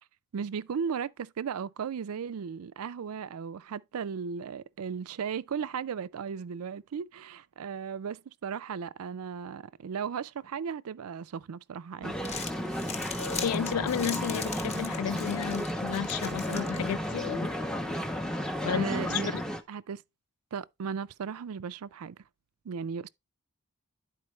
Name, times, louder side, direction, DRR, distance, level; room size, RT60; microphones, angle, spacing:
voice 1, 0.3-12.2 18.7-19.4 19.7-20.0 20.5-22.2 22.6-23.1, right 6 dB, 80° right, 0.4 m, -36 dB
Crumpling crinkling, 12.0-17.3, left 5 dB, 30° left, 0.9 m, -41 dB
sound 1, 12.0-19.6, equal, 5° left, 0.6 m, -33 dB
Bell, 13.2-14.8, left 3 dB, 55° left, 0.7 m, -44 dB
voice 2, 13.4-17.7 18.6-19.4, left 8 dB, 80° left, 0.3 m, -32 dB
11.0 x 4.4 x 3.1 m
head